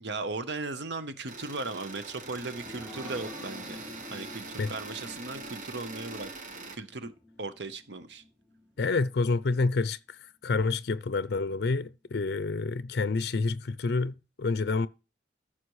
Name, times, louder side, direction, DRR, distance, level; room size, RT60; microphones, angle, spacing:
voice 1, 0.0-3.8 4.1-6.3 6.7-7.1 7.4-8.2, right 3 dB, 70° right, 0.9 m, -37 dB
sound 1, 1.3-6.8, right 2 dB, 45° right, 1.4 m, -43 dB
sound 2, 2.0-9.0 9.5-9.6 9.9-10.0, left 2 dB, ahead, 3.7 m, -49 dB
voice 2, 8.8-14.9, left 3 dB, 60° left, 0.4 m, -28 dB
14.5 x 5.8 x 3.1 m
head